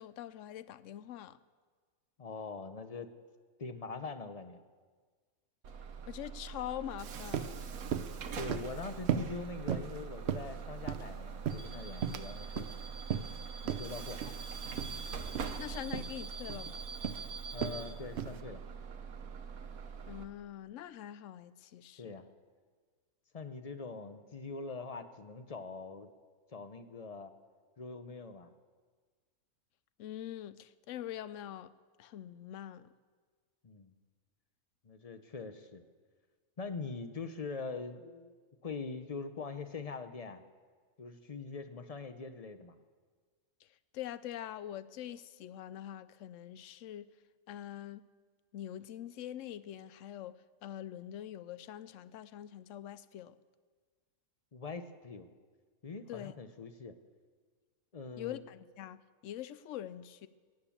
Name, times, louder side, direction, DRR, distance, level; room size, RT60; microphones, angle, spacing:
voice 1, 0.0-1.4 6.1-7.6 15.6-16.8 20.1-22.1 30.0-31.7 32.0-32.9 43.9-47.1 47.5-48.0 48.5-50.4 50.6-53.4 56.1-56.3 58.2-60.3, left 11 dB, 70° left, 16 dB, 0.9 m, -44 dB
voice 2, 2.2-3.1 3.6-4.6 8.3-12.7 13.6-14.2 17.5-18.6 22.0-22.2 23.3-26.1 26.5-27.3 27.8-28.5 33.6-33.9 34.8-35.8 36.6-38.4 38.6-40.4 41.0-42.8 54.5-55.3 55.8-56.9 57.9-58.4, left 4 dB, 40° left, 10 dB, 0.6 m, -43 dB
Bus / Alarm, 5.6-20.2, right 5 dB, 75° right, 1.4 m, -43 dB
sound 1, 7.0-7.1 7.3-7.6 7.9-8.2 8.5-8.8 9.1-9.3 9.7-10.0 10.3-11.1 11.5-12.3 12.6-12.7 13.1-13.4 13.7-13.8 14.2-14.4 14.8-15.0 15.3-15.5 15.9-16.1 16.5-16.7 17.0-17.2 17.6-17.8 18.2-18.4, right 8 dB, 60° right, 0.8 m, -35 dB
17.0 x 8.9 x 7.2 m, 1.5 s
omnidirectional pair, 1.5 m